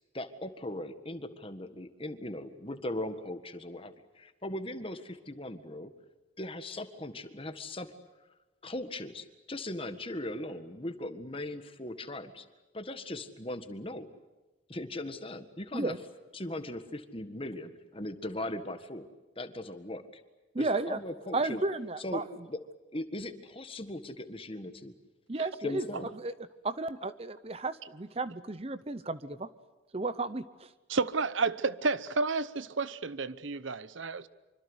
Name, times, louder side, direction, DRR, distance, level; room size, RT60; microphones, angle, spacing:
voice 1, 0.1-5.9 6.4-7.9 8.6-12.4 12.7-14.1 14.7-16.0 16.3-19.1 19.4-20.0 20.6-21.6 22.0-22.6 22.9-24.9 25.6-26.1, left 1 dB, 25° left, 1.6 m, -39 dB
voice 2, 20.5-21.0 21.3-22.2 25.3-25.8 26.2-26.3 26.6-29.5 29.9-30.4, right 2 dB, 30° right, 0.8 m, -33 dB
voice 3, 30.9-34.3, right 4 dB, 75° right, 0.9 m, -31 dB
26.0 x 25.0 x 8.1 m
head